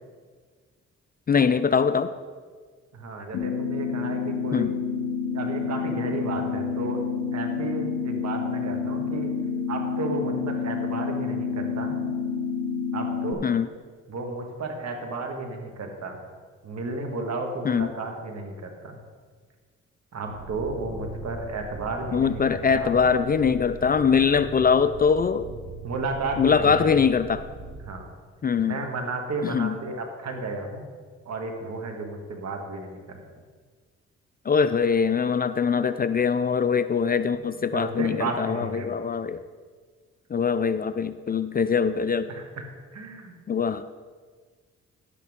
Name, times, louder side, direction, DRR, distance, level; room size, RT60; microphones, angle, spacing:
voice 1, 1.3-2.1 4.5-4.7 13.4-13.7 17.6-17.9 22.1-25.5 26.4-27.4 28.4-28.8 29.4-29.8 34.5-39.4 40.3-42.3 43.5-43.8, left 6 dB, 30° left, 13 dB, 0.4 m, -22 dB
voice 2, 2.9-4.7 5.3-7.0 7.3-9.3 9.7-12.0 12.9-13.5 14.1-16.2 16.6-19.0 20.1-23.0 25.8-26.8 27.8-28.1 28.6-30.9 31.3-33.2 37.4-37.5 37.7-38.9 42.3-42.6 42.9-43.3, right 3 dB, 65° right, 3 dB, 1.7 m, -33 dB
sound 1, 3.3-13.3, left 6 dB, 80° left, 0.7 m, -29 dB
sound 2, 20.2-27.8, right 3 dB, 85° right, 1.1 m, -40 dB
10.5 x 8.3 x 3.6 m, 1.5 s
cardioid pair, 65°, 29 cm